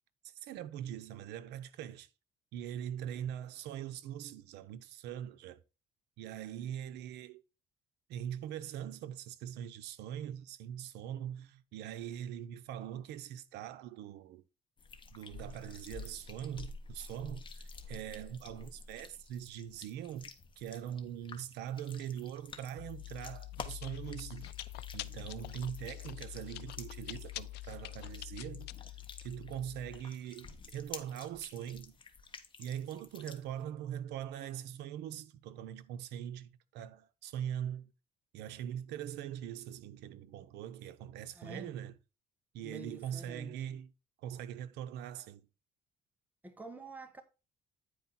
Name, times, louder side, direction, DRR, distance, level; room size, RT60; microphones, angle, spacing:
voice 1, 0.2-2.1 2.5-5.6 6.2-7.4 8.1-14.4 15.1-24.5 24.9-28.7 29.2-32.0 32.6-37.9 38.3-41.9 42.5-43.9 44.2-45.5, right 10 dB, 85° right, 0.9 m, -42 dB
sound 1, 14.8-33.6, left 4 dB, 30° left, 1.3 m, -51 dB
Chewing mastication, 22.8-30.0, left 16 dB, 80° left, 0.5 m, -45 dB
voice 2, 41.3-41.8 42.6-43.8 46.4-47.2, right 2 dB, 10° right, 1.5 m, -48 dB
9.8 x 4.7 x 4.3 m
cardioid pair, 110°, 17 cm